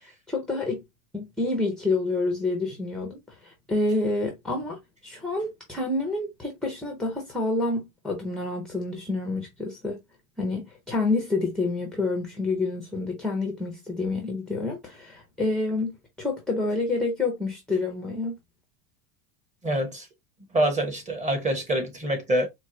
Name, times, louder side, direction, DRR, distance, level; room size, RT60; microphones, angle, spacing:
voice 1, 0.3-0.8 1.1-10.0 10.4-18.3, left 2 dB, ahead, 0.5 m, -28 dB
voice 2, 19.6-20.1 20.5-22.5, right 1 dB, 15° right, 0.9 m, -25 dB
4.5 x 2.2 x 2.6 m
supercardioid pair, 140°, 44 cm